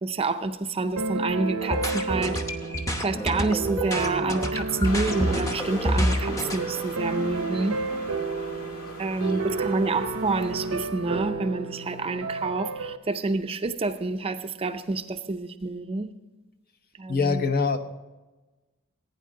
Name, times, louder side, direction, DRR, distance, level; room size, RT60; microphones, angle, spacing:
voice 1, 0.0-2.4 3.0-7.8 9.0-16.1 17.0-17.5, right 3 dB, 25° right, 9 dB, 0.5 m, -28 dB
sound 1, 1.0-13.0, right 4 dB, 75° right, 0.7 m, -32 dB
sound 2, 1.6-6.6, equal, 15° left, 0.9 m, -28 dB
sound 3, 4.8-10.9, left 1 dB, 90° left, 1.9 m, -39 dB
voice 2, 9.2-9.6 17.1-17.8, left 4 dB, 45° left, 8 dB, 0.8 m, -25 dB
16.0 x 9.3 x 3.7 m, 1.1 s
head